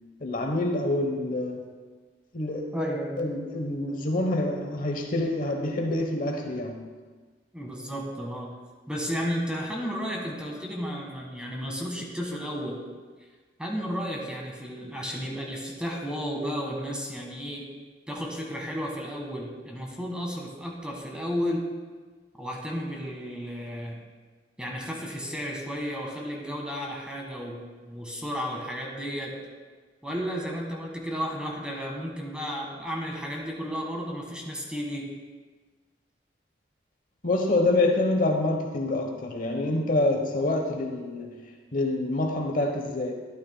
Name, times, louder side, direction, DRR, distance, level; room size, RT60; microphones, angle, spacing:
voice 1, 0.2-1.6 2.3-2.6 3.2-6.8 37.2-41.3 41.7-43.1, left 2 dB, 50° left, 3 dB, 0.9 m, -26 dB
voice 2, 2.7-3.2 7.5-8.5 8.9-12.8 13.6-17.7 18.1-21.6 22.4-24.0 24.6-29.4 30.0-35.1, equal, 5° right, -1 dB, 1.5 m, -33 dB
12.0 x 11.5 x 2.2 m, 1.4 s
head